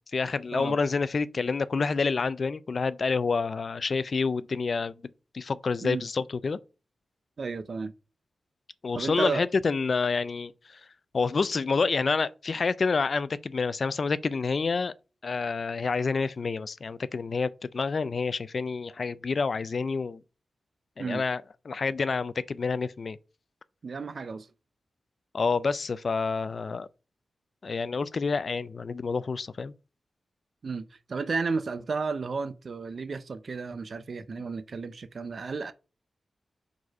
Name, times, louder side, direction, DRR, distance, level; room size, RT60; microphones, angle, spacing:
voice 1, 0.1-4.9 5.3-6.6 8.8-10.8 11.1-14.9 15.2-20.2 21.0-23.2 25.3-26.9 27.6-29.7, left 4 dB, 45° left, 0.3 m, -28 dB
voice 2, 7.4-7.9 8.9-9.5 21.0-21.2 23.8-24.5 30.6-35.7, right 4 dB, 50° right, 0.4 m, -33 dB
5.0 x 4.1 x 4.5 m
wide cardioid pair, 150°, 0 cm